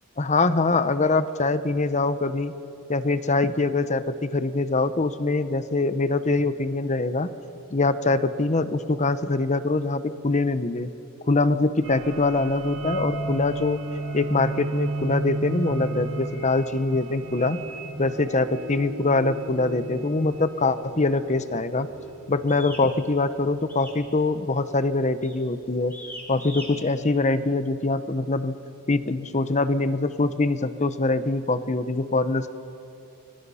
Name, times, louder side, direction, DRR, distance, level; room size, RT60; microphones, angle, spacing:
voice 1, 0.2-2.5 2.9-7.3 7.7-10.9 11.3-13.8 14.1-17.6 18.0-21.9 22.3-25.9 26.3-28.6 28.9-32.5, left 3 dB, 35° left, 12 dB, 0.9 m, -23 dB
sound 1, 11.8-23.1, right 1 dB, 65° right, 2.2 m, -34 dB
sound 2, 22.5-22.9 23.7-24.1 24.3-24.7 25.2-25.4 25.9-26.7, equal, 10° left, 4.5 m, -40 dB
30.0 x 23.0 x 5.7 m, 2.9 s
head